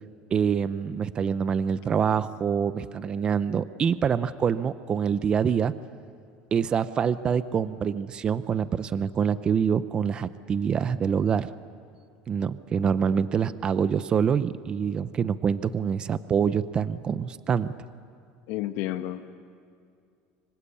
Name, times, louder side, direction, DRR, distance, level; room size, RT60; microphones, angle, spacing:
voice 1, 0.3-5.7 6.5-11.5 12.3-17.7, right 7 dB, 25° right, 14 dB, 0.6 m, -25 dB
voice 2, 18.5-19.3, left 14 dB, 65° left, 8 dB, 1.1 m, -31 dB
26.0 x 25.0 x 8.5 m, 2.2 s
cardioid pair, 155°, 4 cm